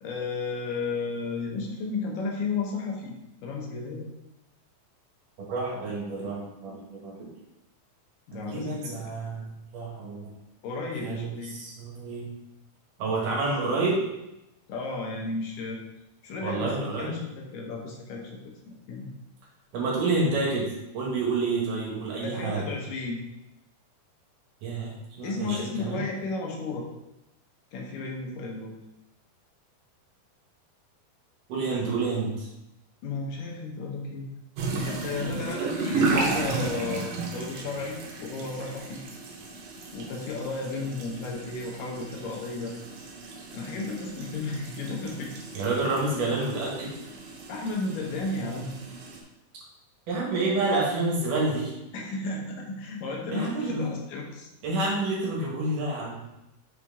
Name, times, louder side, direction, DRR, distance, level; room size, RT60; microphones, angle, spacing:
voice 1, 0.0-3.2 3.4-4.1 8.3-9.2 10.6-11.6 14.7-15.8 16.2-19.1 22.2-23.2 25.2-26.9 27.7-28.7 33.0-34.3 34.8-39.0 39.9-42.7 43.5-45.4 47.5-48.8 51.9-54.5, left 3 dB, 75° left, 0 dB, 2.5 m, -33 dB
voice 2, 5.4-7.3 8.3-10.3 11.0-12.3 13.0-14.0 16.4-17.2 19.7-22.7 24.6-26.0 31.5-32.5 45.5-47.0 50.1-51.7 53.3-53.9 54.6-56.2, right 3 dB, 70° right, -3 dB, 2.8 m, -29 dB
sound 1, 34.6-49.2, right 4 dB, 85° right, 2.7 m, -34 dB
6.2 x 4.5 x 3.5 m, 0.91 s
omnidirectional pair, 4.0 m